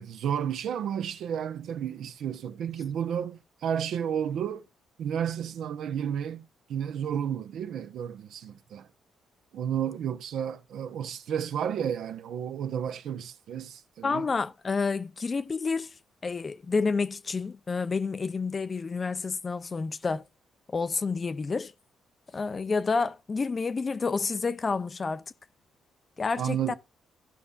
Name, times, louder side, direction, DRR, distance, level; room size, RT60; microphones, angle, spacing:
voice 1, 0.0-4.6 5.0-8.9 9.5-14.3 26.4-26.7, right 9 dB, 75° right, 0.8 m, -32 dB
voice 2, 14.0-16.0 16.2-20.2 20.7-21.7 22.3-25.2 26.2-26.7, left 4 dB, 35° left, 0.5 m, -29 dB
16.0 x 5.5 x 2.4 m
cardioid pair, 90°, 0 cm